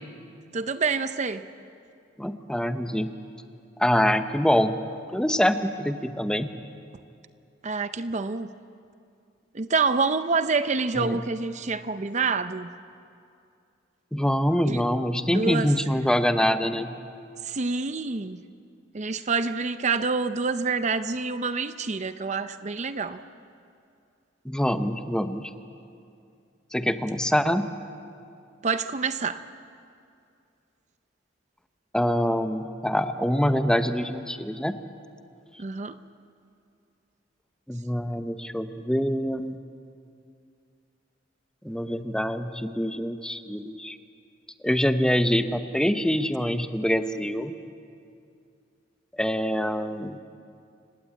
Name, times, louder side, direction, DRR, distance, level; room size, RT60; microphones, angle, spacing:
voice 1, 0.5-1.4 7.6-8.5 9.5-12.7 14.7-14.8 15.2-15.7 17.4-18.4 18.9-23.2 28.6-29.4 35.6-36.0, right 4 dB, 40° right, 11 dB, 0.6 m, -27 dB
voice 2, 2.2-3.1 3.8-4.8 5.1-6.5 10.9-11.2 14.1-16.9 24.4-25.5 26.7-27.7 31.9-34.8 37.7-39.6 41.6-44.0 44.6-47.5 49.2-50.2, equal, 5° left, 8 dB, 0.8 m, -25 dB
29.5 x 17.5 x 8.3 m, 2.4 s
head